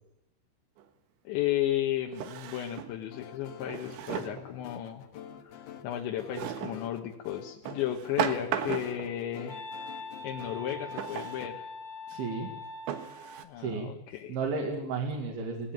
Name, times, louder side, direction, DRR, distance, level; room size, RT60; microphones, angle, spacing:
Drawer open or close, 0.8-0.9 2.1-3.0 3.7-4.5 6.3-6.8 7.7-9.1 11.0-11.4 12.1-12.2 12.9-13.4, right 9 dB, 80° right, 3.8 m, -35 dB
voice 1, 1.3-5.0 5.4-9.7 9.9-11.6 13.4-14.4, left 12 dB, 80° left, 2 dB, 3.6 m, -34 dB
sound 1, 3.1-11.5, left 8 dB, 65° left, 3.2 m, -48 dB
Wind instrument woodwind instrument, 8.5-13.6, left 3 dB, 45° left, 2.6 m, -43 dB
voice 2, 12.1-12.5 13.6-13.9 14.3-15.7, right 4 dB, 60° right, 0 dB, 3.9 m, -33 dB
19.0 x 18.5 x 9.1 m, 0.79 s
omnidirectional pair, 5.4 m